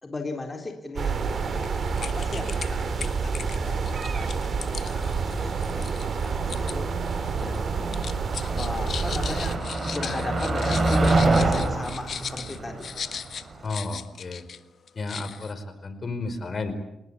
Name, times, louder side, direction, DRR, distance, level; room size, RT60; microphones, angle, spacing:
voice 1, 0.0-4.4 4.8-6.9 7.3-8.1 8.5-13.1, left 2 dB, 30° left, 3 dB, 4.2 m, -37 dB
sound 1, 1.0-9.6, right 5 dB, 55° right, 3.2 m, -28 dB
sound 2, 1.6-1.7 2.0-2.7 3.0-6.8 7.1-7.6 7.9-14.6 14.9-15.5, left 7 dB, 60° left, 1.5 m, -37 dB
Motor vehicle (road), 3.3-13.7, right 2 dB, 40° right, 6.8 m, -28 dB
voice 2, 13.6-14.4 14.9-16.7, left 3 dB, 45° left, 10 dB, 4.9 m, -32 dB
28.5 x 19.0 x 8.8 m, 0.88 s
cardioid pair, 70°, 0 cm